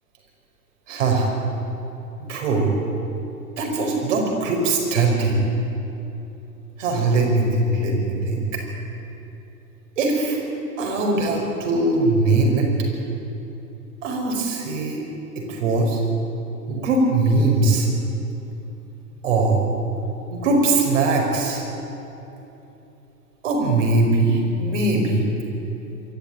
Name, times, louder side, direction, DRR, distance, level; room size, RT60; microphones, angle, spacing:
voice 1, 0.9-1.3 2.3-2.7 3.6-5.4 6.8-8.4 10.0-10.4 10.8-12.7 14.0-15.0 15.4-16.0 16.7-17.9 19.2-19.6 20.3-21.6 23.4-25.3, right 2 dB, 50° right, 0 dB, 5.4 m, -21 dB
23.5 x 14.0 x 8.9 m, 2.9 s
figure-of-eight pair, 105°, 47 cm